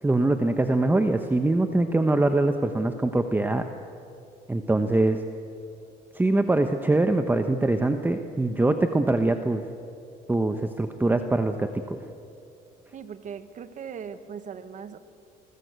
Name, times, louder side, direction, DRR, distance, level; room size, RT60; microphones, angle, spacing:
voice 1, 0.0-3.7 4.5-5.2 6.1-9.6 10.3-12.0, right 2 dB, 10° right, 7 dB, 1.1 m, -23 dB
voice 2, 12.9-15.0, right 7 dB, 50° right, 11 dB, 1.6 m, -39 dB
27.5 x 20.0 x 8.2 m, 2.7 s
cardioid pair, 110°, 17 cm